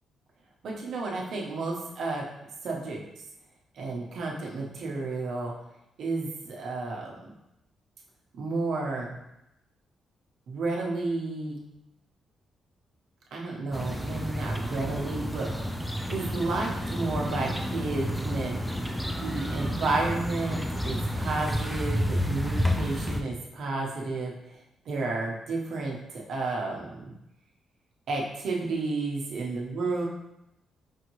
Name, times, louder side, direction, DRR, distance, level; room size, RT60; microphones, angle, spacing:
voice 1, 0.6-2.2 2.6-3.2 3.7-5.5 6.0-7.3 8.4-9.2 10.5-11.6 13.3-15.7 16.0-18.8 19.2-24.6 24.8-27.1 28.1-30.1, right 3 dB, 65° right, -2 dB, 0.9 m, -32 dB
sound 1, 13.7-23.2, equal, ahead, 0.3 m, -30 dB
5.0 x 2.7 x 3.0 m, 0.87 s
cardioid pair, 140°, 0 cm